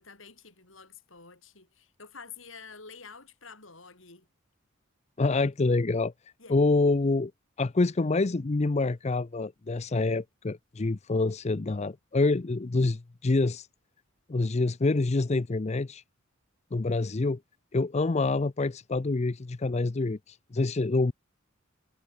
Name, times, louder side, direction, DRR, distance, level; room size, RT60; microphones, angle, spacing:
voice 1, 0.0-4.3 6.4-6.6, left 5 dB, 75° left, 7.7 m, -49 dB
voice 2, 5.2-6.1 6.5-7.3 7.6-13.7 14.3-16.0 16.7-17.4 17.7-21.1, left 3 dB, 35° left, 0.5 m, -26 dB
head